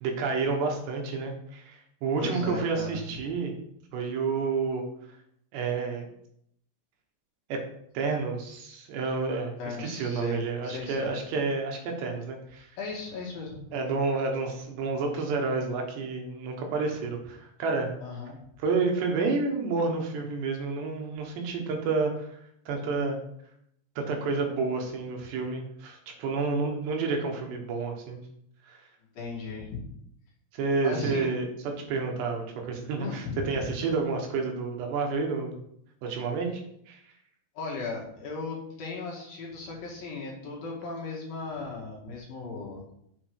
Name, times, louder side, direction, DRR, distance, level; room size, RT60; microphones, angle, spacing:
voice 1, 0.0-3.5 3.9-4.9 5.5-6.1 7.5-7.7 8.0-12.7 13.7-18.0 18.6-22.4 22.7-23.2 24.0-28.2 28.7-28.8 30.5-35.6 36.0-36.6 36.9-37.0, right 4 dB, 75° right, 2 dB, 3.5 m, -30 dB
voice 2, 2.2-3.0 9.6-11.1 12.8-13.6 18.0-18.4 29.1-29.8 30.8-31.3 33.0-33.7 37.5-42.8, left 4 dB, 60° left, -3 dB, 3.3 m, -36 dB
8.7 x 7.3 x 4.8 m, 0.71 s
omnidirectional pair, 5.1 m